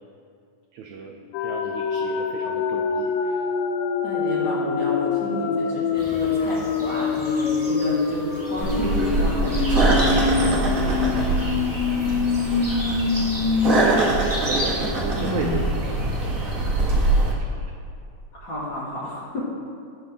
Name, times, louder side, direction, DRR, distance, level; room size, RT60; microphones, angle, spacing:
voice 1, 0.7-3.5 12.5-12.6 13.7-16.7 17.0-17.7, right 5 dB, 85° right, 3 dB, 1.6 m, -34 dB
sound 1, 1.3-13.8 14.2-14.3 14.6-17.3, left 5 dB, 80° left, 2.2 m, -25 dB
voice 2, 4.0-10.7 11.3-11.4 12.0-12.2 18.3-19.4, left 1 dB, 45° left, -6 dB, 1.7 m, -31 dB
sound 2, 6.0-14.8, equal, 10° right, 1.5 m, -35 dB
sound 3, 8.6-17.3, right 2 dB, 70° right, 0.7 m, -23 dB
18.5 x 6.2 x 3.5 m, 2.4 s
omnidirectional pair, 4.0 m